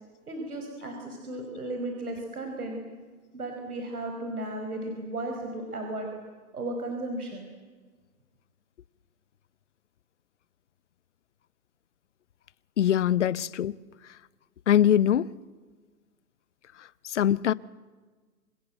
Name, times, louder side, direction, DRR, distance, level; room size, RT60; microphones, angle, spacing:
voice 1, 0.3-2.8 3.3-6.1 6.5-7.5, right 1 dB, 80° right, 5.6 m, -35 dB
voice 2, 12.8-13.7 14.7-15.3 17.0-17.5, left 10 dB, 55° left, 0.8 m, -22 dB
28.0 x 26.0 x 7.9 m
hypercardioid pair, 155°, 44 cm